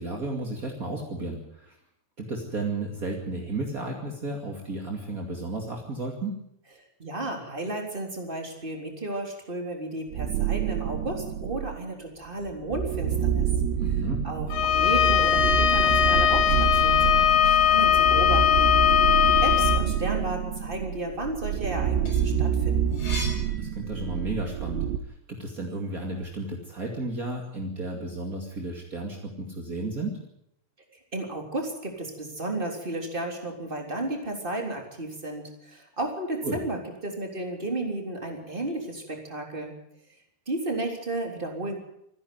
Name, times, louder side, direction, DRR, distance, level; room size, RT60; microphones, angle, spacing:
voice 1, 0.0-1.7 2.2-6.4 13.8-14.2 23.4-24.8 25.3-30.2 36.4-36.6, right 2 dB, 35° right, 0 dB, 1.5 m, -33 dB
voice 2, 7.0-13.5 14.2-18.8 19.4-23.0 31.1-39.7 40.5-41.8, right 2 dB, 15° right, 2 dB, 2.9 m, -33 dB
sound 1, 10.1-11.8 12.4-25.0, right 9 dB, 75° right, 3.0 m, -27 dB
Bowed string instrument, 14.5-19.8, left 10 dB, 80° left, 4.1 m, -20 dB
sound 2, 22.0-24.5 24.9-26.3, left 2 dB, 45° left, 7.7 m, -40 dB
26.0 x 11.0 x 9.5 m, 0.78 s
omnidirectional pair, 5.6 m